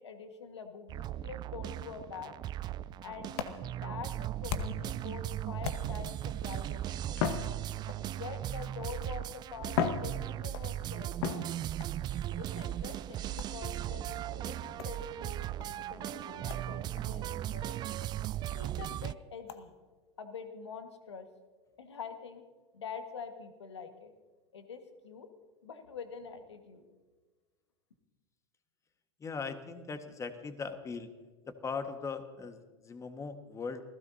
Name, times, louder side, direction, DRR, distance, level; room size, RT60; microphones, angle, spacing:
voice 1, 0.0-2.3 3.0-3.4 3.8-7.3 8.0-11.4 12.4-17.8 18.5-19.7 20.2-21.3 21.8-22.4 22.7-24.1 24.5-25.3 25.6-26.8, left 6 dB, 80° left, 7 dB, 1.7 m, -45 dB
sound 1, 0.9-19.1, right 13 dB, 30° right, 0.4 m, -37 dB
sound 2, 2.8-5.0 5.6-6.2 7.1-8.2 9.1-9.2 9.7-10.7 11.2-11.9 13.4-13.7 14.8-15.0 15.6-15.7 16.1-16.2 16.5-16.7 17.0-17.1 17.5-17.6 18.0-18.1 18.5-18.6 19.5-19.6, left 8 dB, 60° left, 1.2 m, -36 dB
voice 2, 29.2-31.1 31.5-33.8, left 5 dB, 20° left, 8 dB, 1.5 m, -39 dB
28.0 x 16.0 x 2.8 m, 1.4 s
hypercardioid pair, 90°, 14 cm